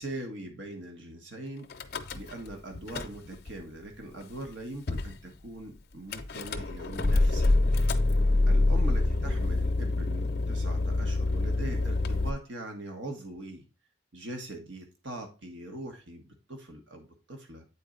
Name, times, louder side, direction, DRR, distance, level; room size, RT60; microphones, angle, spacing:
voice 1, 0.0-1.7 2.1-8.0 8.5-13.6 14.1-17.6, right 1 dB, 85° right, 3 dB, 1.3 m, -42 dB
Car / Engine starting / Idling, 1.7-2.5 2.8-3.5 4.2-4.3 4.5-4.6 4.9-5.2 6.1-12.3, left 2 dB, 55° left, 0.6 m, -26 dB
8.5 x 4.2 x 3.7 m, 0.30 s
head